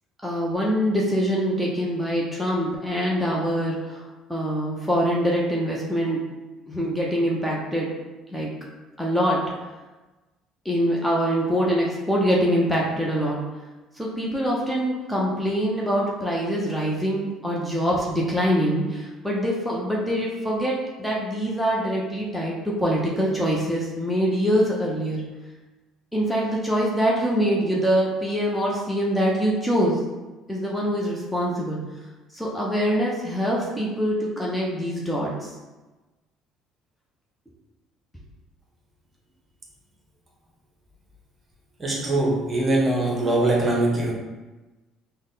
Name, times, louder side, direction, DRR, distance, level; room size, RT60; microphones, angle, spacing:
voice 1, 0.2-6.3 6.7-7.9 8.3-8.5 9.0-9.5 10.6-13.4 14.0-25.2 26.1-30.0 30.5-31.8 32.3-35.6, equal, ahead, -4 dB, 0.7 m, -24 dB
voice 2, 41.8-44.1, right 2 dB, 30° right, -2 dB, 0.9 m, -22 dB
3.6 x 2.1 x 3.8 m, 1.2 s
supercardioid pair, 80°, 0 cm